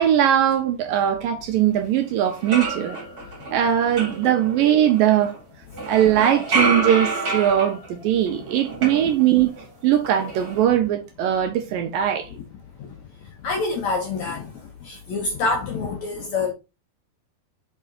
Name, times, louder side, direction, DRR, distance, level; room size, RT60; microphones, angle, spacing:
voice 1, 0.0-3.0 3.5-5.3 5.9-9.5 9.8-12.3, right 10 dB, 80° right, 2.2 m, -20 dB
sound 1, 1.8-1.9 2.2-5.4 5.7-9.6 9.9-10.7, right 3 dB, 35° right, 1.7 m, -29 dB
voice 2, 13.4-14.5 14.8-16.5, left 3 dB, 65° left, 1.9 m, -26 dB
5.8 x 5.3 x 4.0 m
omnidirectional pair, 4.6 m